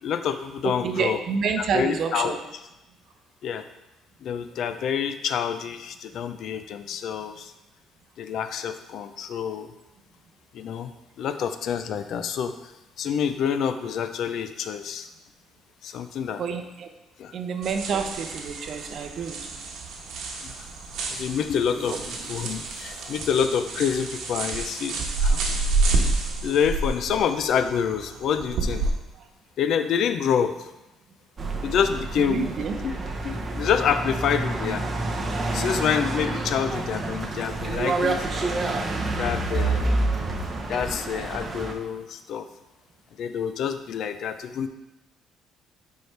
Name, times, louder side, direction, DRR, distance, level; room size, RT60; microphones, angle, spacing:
voice 1, 0.0-1.2 1.7-2.3 3.4-3.7 4.2-7.5 8.2-9.7 10.5-10.9 11.2-12.5 13.0-15.1 15.8-16.4 17.2-17.3 20.4-20.5 21.1-22.0 22.3-25.4 26.4-28.8 29.6-30.7 31.6-32.5 32.8-33.0 33.2-34.8 35.5-38.6 39.2-40.0 40.7-42.4 43.2-44.7, left 7 dB, 60° left, 9 dB, 0.4 m, -27 dB
voice 2, 0.6-2.4 16.4-16.9 17.3-19.4 21.9-22.0 32.2-32.8, right 6 dB, 50° right, 6 dB, 0.7 m, -28 dB
sound 1, 17.6-28.9, right 3 dB, 65° right, 1.1 m, -29 dB
sound 2, 21.7-26.0 26.5-26.6, equal, 10° left, 2.4 m, -46 dB
sound 3, 31.4-41.7, right 2 dB, 25° right, 0.9 m, -28 dB
9.2 x 4.7 x 3.3 m, 0.99 s
cardioid pair, 140°, 0 cm